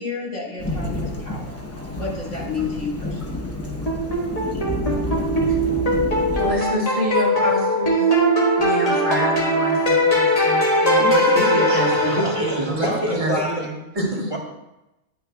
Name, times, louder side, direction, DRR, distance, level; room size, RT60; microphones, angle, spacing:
voice 1, 0.0-1.6 1.9-3.5 4.5-4.6 11.0-13.4, left 3 dB, 80° left, -4 dB, 2.3 m, -29 dB
Thunderstorm / Rain, 0.6-6.5, left 1 dB, 15° left, 0.8 m, -29 dB
sound 1, 3.9-12.7, equal, 30° left, 1.6 m, -20 dB
voice 2, 6.3-8.2 8.6-13.6 14.0-14.3, right 1 dB, 65° right, -2 dB, 2.3 m, -28 dB
voice 3, 11.7-14.4, right 1 dB, 25° right, -2 dB, 1.5 m, -29 dB
10.5 x 8.6 x 2.3 m, 0.94 s
omnidirectional pair, 1.3 m